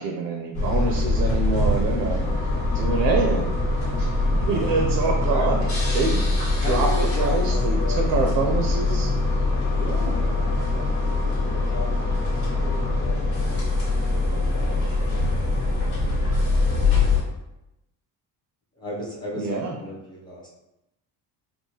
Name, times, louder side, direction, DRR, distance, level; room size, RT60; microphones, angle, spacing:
voice 1, 0.0-2.3 2.7-3.5 4.0-5.6 5.9-6.3 6.6-6.9 7.2-9.1 9.7-10.2 19.3-19.7, right 4 dB, 55° right, 2 dB, 0.5 m, -26 dB
sound 1, 0.5-17.2, left 2 dB, 35° left, 1.2 m, -23 dB
sound 2, 2.2-13.0, left 1 dB, 55° left, 0.9 m, -38 dB
voice 2, 6.6-8.1 8.8-9.1 10.1-10.9 11.3-12.3 12.6-16.1 18.8-20.5, left 1 dB, 10° left, -6 dB, 0.5 m, -36 dB
4.5 x 2.1 x 2.8 m, 0.90 s
cardioid pair, 175°, 43 cm